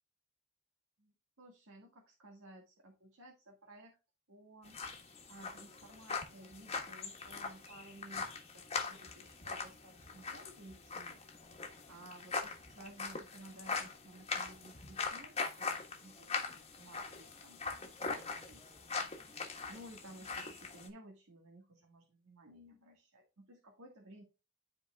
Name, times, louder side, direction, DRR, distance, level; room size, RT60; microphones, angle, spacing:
voice 1, 1.0-4.0 4.3-11.4 11.9-24.2, right 1 dB, 80° right, 1 dB, 1.8 m, -56 dB
sound 1, 4.7-20.9, left 4 dB, 30° left, 1.4 m, -42 dB
12.5 x 4.6 x 2.3 m, 0.28 s
head